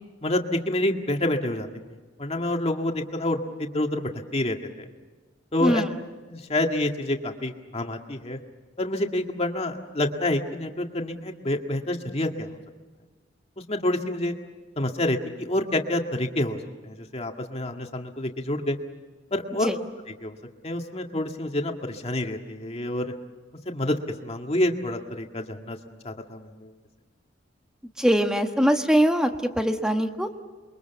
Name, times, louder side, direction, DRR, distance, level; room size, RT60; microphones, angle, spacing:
voice 1, 0.2-1.7 2.2-4.9 5.5-5.8 6.3-8.4 8.8-12.5 13.7-14.3 14.8-16.6 16.8-18.8 19.3-19.7 20.2-20.4 20.6-23.1 23.7-25.8 26.0-26.7, left 1 dB, 35° left, 4 dB, 1.9 m, -28 dB
voice 2, 28.0-29.3 29.6-30.3, equal, 5° right, 6 dB, 1.4 m, -22 dB
28.5 x 23.0 x 7.1 m, 1.4 s
head